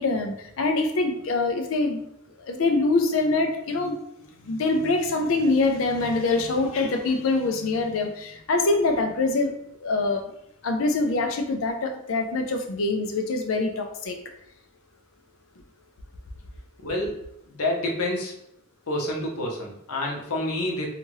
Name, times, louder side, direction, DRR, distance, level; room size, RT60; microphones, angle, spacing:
voice 1, 0.0-2.0 2.4-3.9 4.2-9.5 9.8-10.2 10.6-14.2, left 3 dB, 70° left, 4 dB, 0.5 m, -24 dB
voice 2, 16.8-18.3 18.9-20.9, left 1 dB, 90° left, -1 dB, 0.8 m, -28 dB
2.7 x 2.4 x 3.0 m, 0.75 s
head